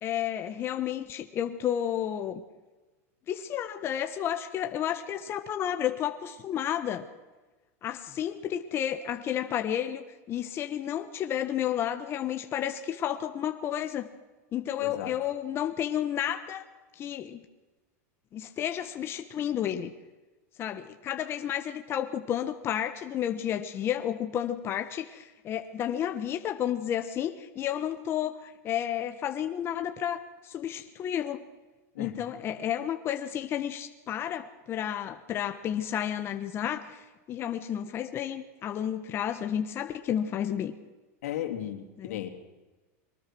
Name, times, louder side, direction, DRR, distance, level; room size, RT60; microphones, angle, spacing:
voice 1, 0.0-2.4 3.3-7.0 7.8-14.1 14.5-16.7 16.9-17.4 18.3-19.9 20.6-31.4 32.0-40.7 42.0-42.2, left 10 dB, 30° left, 7 dB, 1.1 m, -31 dB
voice 2, 14.8-15.1 31.9-32.2 41.2-42.3, left 12 dB, 80° left, 4 dB, 3.0 m, -35 dB
23.0 x 19.5 x 6.3 m, 1.2 s
supercardioid pair, 145°, 8 cm